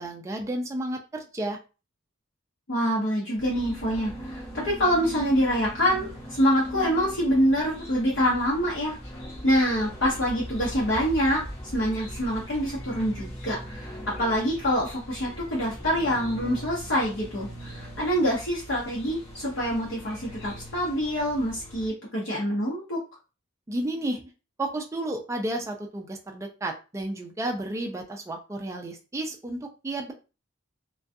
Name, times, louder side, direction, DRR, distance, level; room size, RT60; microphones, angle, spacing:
voice 1, 0.0-1.6 23.7-24.3 24.6-30.1, right 1 dB, 15° right, 2 dB, 0.3 m, -32 dB
voice 2, 2.7-6.1 6.4-9.0 9.4-11.4 11.7-23.0, equal, 65° left, -5 dB, 0.8 m, -25 dB
sound 1, 3.4-21.9, equal, 30° left, 0.9 m, -40 dB
2.3 x 2.2 x 2.6 m, 0.32 s
head